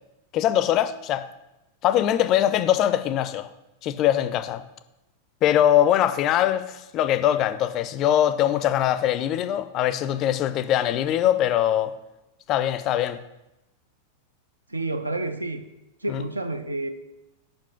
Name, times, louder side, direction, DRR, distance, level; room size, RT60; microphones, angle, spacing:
voice 1, 0.3-1.3 1.8-3.5 3.8-4.6 5.4-11.9 12.5-13.2 16.1-16.2, left 11 dB, 35° left, 0.3 m, -22 dB
voice 2, 14.7-15.6 16.0-16.9, right 2 dB, 80° right, 0.4 m, -29 dB
5.2 x 5.1 x 5.0 m
figure-of-eight pair, 90°, 0 cm